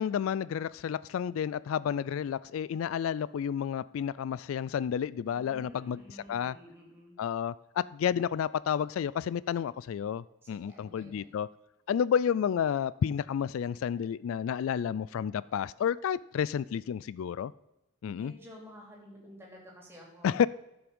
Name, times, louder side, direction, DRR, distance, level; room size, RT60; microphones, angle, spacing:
voice 1, 0.0-6.0 6.3-6.6 7.2-11.5 11.9-17.5 18.0-18.3 20.2-20.5, left 8 dB, 85° left, 20 dB, 0.3 m, -31 dB
voice 2, 5.3-7.2 10.4-11.3 18.1-20.4, equal, 10° right, -2 dB, 2.8 m, -51 dB
13.5 x 5.9 x 5.3 m, 0.94 s
head